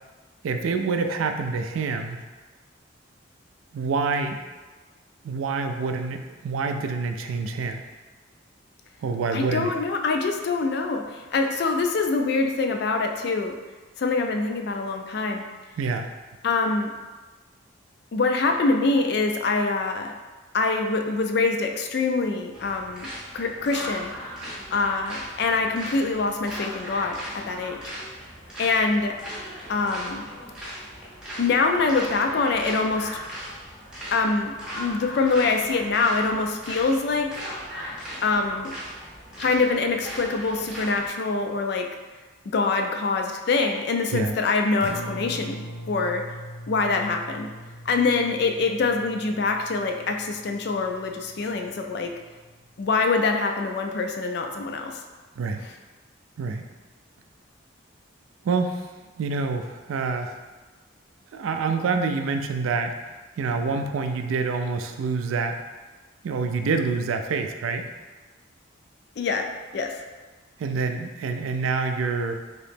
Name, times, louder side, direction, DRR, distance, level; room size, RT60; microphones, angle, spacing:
voice 1, 0.4-2.2 3.7-4.4 5.2-7.8 9.0-9.7 15.8-16.1 44.1-44.3 55.4-55.6 56.4-56.6 58.4-58.9 59.2-60.4 61.3-63.0 63.4-65.6 66.2-67.9 70.6-72.3, right 4 dB, 80° right, 6 dB, 0.3 m, -27 dB
voice 2, 9.3-13.6 14.0-15.4 16.4-16.9 18.1-20.1 20.5-23.1 23.3-24.1 24.7-27.8 28.6-29.1 29.7-30.2 31.4-33.1 34.1-37.4 38.2-38.7 39.4-41.9 42.5-45.6 45.9-46.2 46.7-47.5 47.9-52.1 52.8-55.0 55.6-55.7 69.2-69.4 69.7-70.0, left 3 dB, 50° left, 4 dB, 0.3 m, -24 dB
sound 1, 22.5-41.1, equal, 5° right, 0.6 m, -38 dB
Acoustic guitar, 44.8-52.9, equal, 85° left, 0.7 m, -42 dB
3.0 x 2.8 x 3.3 m, 1.3 s
head